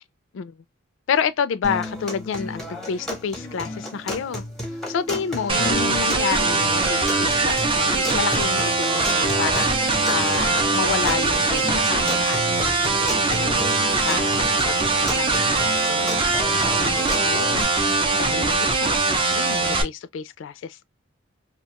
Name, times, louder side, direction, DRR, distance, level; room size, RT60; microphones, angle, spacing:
voice 1, 1.1-4.4 4.9-14.8 15.0-19.0 19.3-20.8, left 7 dB, 65° left, 0.3 m, -30 dB
sound 1, 1.6-17.6, equal, ahead, 0.8 m, -33 dB
sound 2, 5.5-19.8, right 3 dB, 25° right, 0.5 m, -21 dB
2.4 x 2.2 x 2.8 m
head